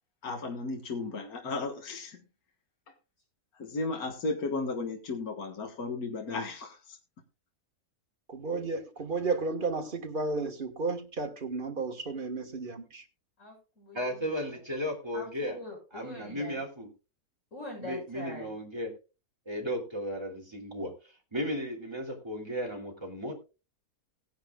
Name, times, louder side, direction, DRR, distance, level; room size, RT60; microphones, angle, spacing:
voice 1, 0.2-2.2 3.6-7.0, left 3 dB, 75° left, 2.0 m, -34 dB
voice 2, 8.3-13.0, right 3 dB, 35° right, 1.6 m, -33 dB
voice 3, 13.4-14.2 14.5-14.6 15.1-16.6 17.5-18.6, left 1 dB, 55° left, 7.7 m, -43 dB
voice 4, 13.9-15.6 15.9-16.9 17.8-18.9 19.4-20.9 21.3-23.3, equal, 15° right, 3.1 m, -35 dB
18.0 x 10.5 x 2.4 m
omnidirectional pair, 1.6 m